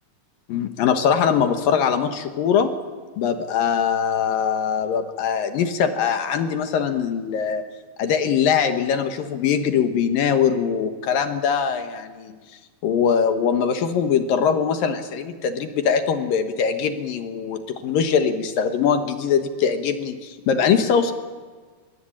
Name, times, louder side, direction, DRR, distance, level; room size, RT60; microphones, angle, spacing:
voice 1, 0.5-2.7 3.2-7.6 8.0-12.3 12.8-21.1, left 7 dB, 70° left, 7 dB, 2.8 m, -22 dB
24.5 x 20.5 x 8.8 m, 1.5 s
omnidirectional pair, 4.7 m